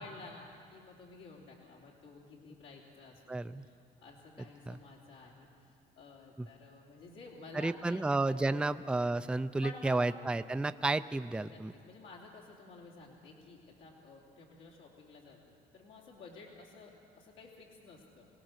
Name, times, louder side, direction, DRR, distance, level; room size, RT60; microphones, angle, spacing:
voice 1, 0.0-5.5 6.0-8.0 8.5-8.7 9.6-10.0 11.5-18.3, left 3 dB, 80° left, -4 dB, 3.1 m, -52 dB
voice 2, 3.3-3.7 4.7-4.8 6.4-6.5 7.5-11.7, right 2 dB, 5° right, 11 dB, 0.4 m, -32 dB
24.5 x 18.0 x 6.5 m, 2.4 s
cardioid pair, 110°, 17 cm